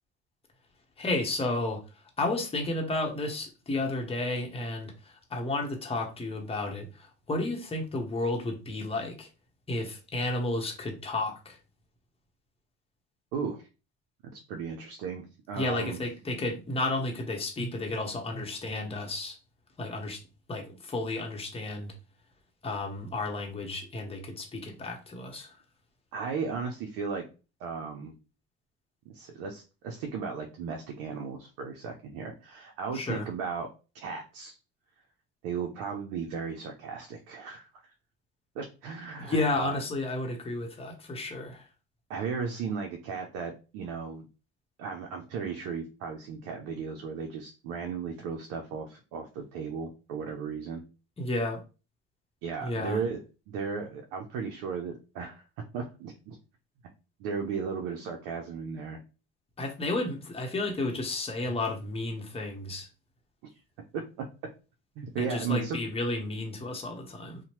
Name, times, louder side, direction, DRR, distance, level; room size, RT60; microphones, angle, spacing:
voice 1, 1.0-1.8 2.2-9.3 9.7-11.6 15.6-19.4 19.8-20.2 20.5-21.9 22.6-25.5 32.9-33.3 39.2-41.6 51.2-51.6 52.6-53.0 59.6-62.9 65.2-67.4, left 2 dB, 20° left, 0.8 m, -32 dB
voice 2, 13.3-13.7 14.2-16.0 26.1-27.3 27.6-28.1 29.1-33.7 33.9-34.6 35.4-37.7 38.5-39.8 42.1-44.3 44.8-50.8 52.4-53.2 53.5-56.4 57.2-59.0 63.9-64.5 65.0-65.8, right 5 dB, 85° right, 0.6 m, -35 dB
2.8 x 2.1 x 3.0 m
supercardioid pair, 75°, 29 cm